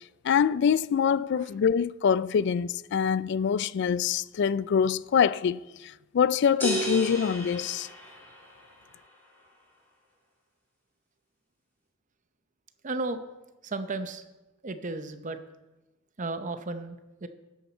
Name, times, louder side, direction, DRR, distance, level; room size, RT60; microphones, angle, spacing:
voice 1, 0.2-7.9, left 7 dB, 55° left, 0.3 m, -25 dB
sound 1, 6.6-8.6, equal, 10° left, 3.3 m, -33 dB
voice 2, 12.8-13.2 13.6-14.2 14.6-15.4 16.2-17.3, right 3 dB, 35° right, 0.7 m, -34 dB
12.5 x 10.0 x 4.3 m
head